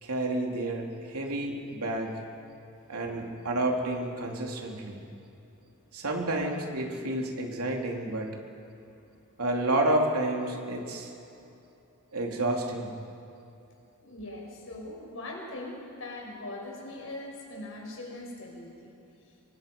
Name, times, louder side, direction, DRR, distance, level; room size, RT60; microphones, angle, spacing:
voice 1, 0.0-2.2 2.9-5.0 5.9-8.3 9.4-11.1 12.1-12.9, right 1 dB, 85° right, 1 dB, 3.1 m, -30 dB
voice 2, 14.0-18.9, left 2 dB, 65° left, -1 dB, 5.7 m, -41 dB
25.5 x 23.0 x 5.4 m, 2.8 s
head